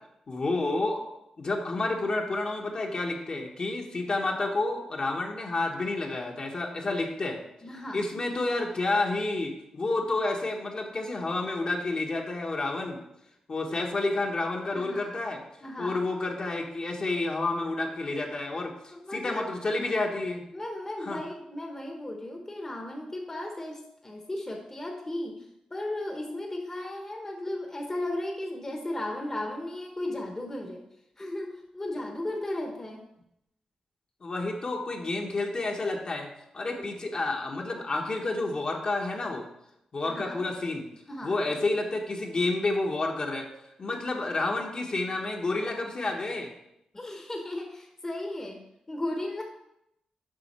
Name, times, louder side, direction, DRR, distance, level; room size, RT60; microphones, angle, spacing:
voice 1, 0.3-1.0 1.4-7.4 7.9-13.0 13.5-15.4 15.8-20.4 21.0-21.2 34.2-36.3 36.5-39.5 39.9-40.8 41.2-43.5 43.8-46.5, left 2 dB, 45° left, 0 dB, 1.3 m, -30 dB
voice 2, 7.6-8.1 14.7-15.2 15.6-16.1 18.9-19.5 20.5-30.9 31.2-33.1 36.8-36.9 40.0-40.4 41.1-41.4 46.9-48.6 48.9-49.4, left 1 dB, 25° left, 1 dB, 1.1 m, -35 dB
7.7 x 5.7 x 4.4 m, 0.82 s
cardioid pair, 90°, 2 cm